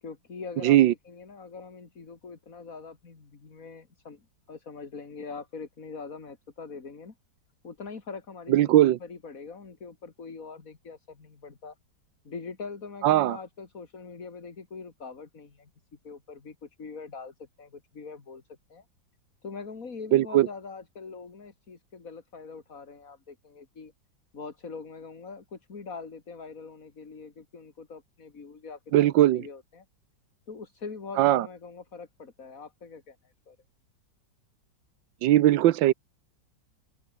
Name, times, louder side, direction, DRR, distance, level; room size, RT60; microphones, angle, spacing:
voice 1, 0.0-7.2 7.6-11.8 12.2-15.7 16.0-18.9 19.4-23.9 24.3-29.9 30.5-33.6, left 4 dB, 50° left, 2.8 m, -43 dB
voice 2, 0.6-0.9 8.5-9.0 13.0-13.4 20.1-20.5 28.9-29.4 31.2-31.5 35.2-35.9, right 14 dB, 85° right, 1.5 m, -19 dB
open air
omnidirectional pair, 2.0 m